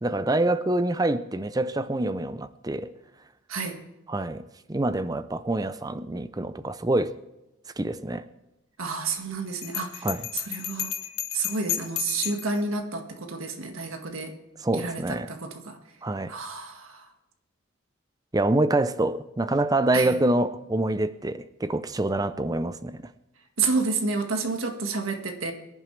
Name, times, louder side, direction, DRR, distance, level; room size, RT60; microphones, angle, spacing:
voice 1, 0.0-2.9 4.1-4.4 4.7-7.1 7.8-8.3 10.0-10.3 14.6-15.3 16.0-16.3 18.3-23.0, right 2 dB, 20° right, 0.5 m, -26 dB
voice 2, 3.5-3.8 8.8-10.1 10.3-11.0 11.3-14.3 14.7-15.8 16.3-17.1 19.9-20.2 23.6-25.5, right 4 dB, 80° right, 1.7 m, -30 dB
Bell, 9.6-12.6, left 13 dB, 75° left, 1.1 m, -32 dB
23.5 x 11.0 x 3.3 m
head